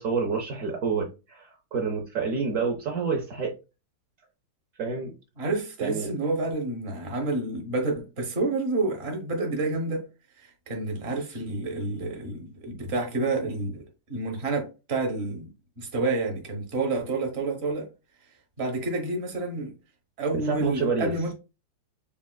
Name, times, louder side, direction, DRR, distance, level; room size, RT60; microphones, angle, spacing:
voice 1, 0.0-3.5 4.8-5.1 5.8-6.1 20.5-21.1, right 5 dB, 65° right, 0.7 m, -28 dB
voice 2, 5.4-10.0 10.4-15.5 15.8-17.9 18.6-19.7 20.2-21.3, right 3 dB, 45° right, 1.0 m, -29 dB
7.1 x 2.4 x 2.2 m
omnidirectional pair, 2.2 m